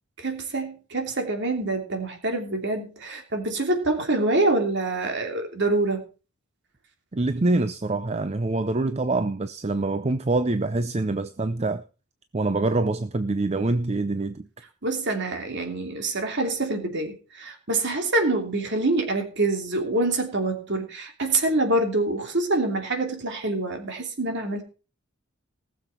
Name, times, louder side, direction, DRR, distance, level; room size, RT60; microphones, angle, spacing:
voice 1, 0.2-6.0 14.8-24.6, right 2 dB, 55° right, 3.0 m, -26 dB
voice 2, 7.1-11.8 12.3-14.5, right 2 dB, 30° right, 0.5 m, -25 dB
19.0 x 7.2 x 4.5 m
head